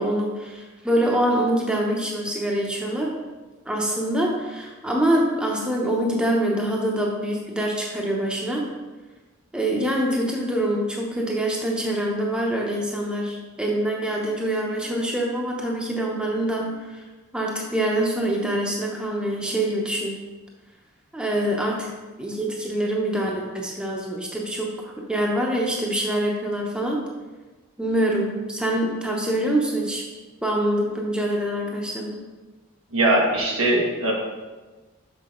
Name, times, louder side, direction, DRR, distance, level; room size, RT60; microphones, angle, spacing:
voice 1, 0.0-3.2 3.7-8.7 9.5-17.0 17.3-20.2 21.1-21.9 22.2-27.1 27.8-30.1 30.4-32.2, right 1 dB, 5° right, -2 dB, 0.8 m, -25 dB
voice 2, 32.9-34.1, right 1 dB, 90° right, -2 dB, 1.5 m, -20 dB
6.1 x 5.9 x 3.7 m, 1.2 s
head